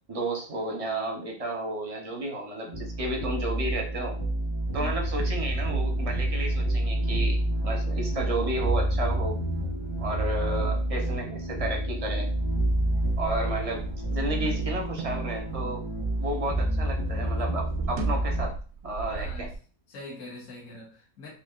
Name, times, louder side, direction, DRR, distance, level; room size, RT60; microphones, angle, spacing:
voice 1, 0.1-4.2 4.7-9.4 10.0-12.3 13.2-13.8 14.1-15.8 16.2-18.5 18.8-19.5, right 1 dB, 35° right, 1 dB, 0.6 m, -32 dB
sound 1, 2.7-18.5, right 1 dB, 25° left, 0.6 m, -28 dB
sound 2, 12.3-16.7 17.0-19.5, right 4 dB, 85° right, 1.0 m, -38 dB
voice 2, 19.1-19.5 19.9-21.3, left 3 dB, 65° left, -5 dB, 1.4 m, -43 dB
4.7 x 2.8 x 2.4 m, 0.40 s
omnidirectional pair, 1.5 m